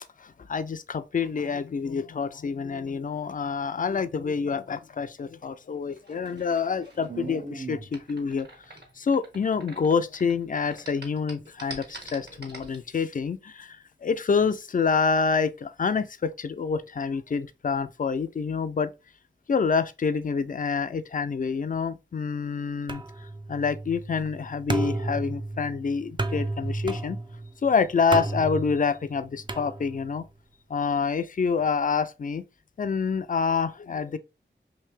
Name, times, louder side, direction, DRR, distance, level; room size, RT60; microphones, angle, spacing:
voice 1, 0.0-18.9 19.5-27.2 27.6-30.2 30.7-32.4 32.8-34.2, left 5 dB, 45° left, 0.4 m, -27 dB
sound 1, 6.0-10.3 10.6-12.8, right 3 dB, 60° right, 1.3 m, -41 dB
sound 2, 22.9-30.3, right 2 dB, 25° right, 0.4 m, -33 dB
3.3 x 2.7 x 3.2 m
wide cardioid pair, 45°, 19 cm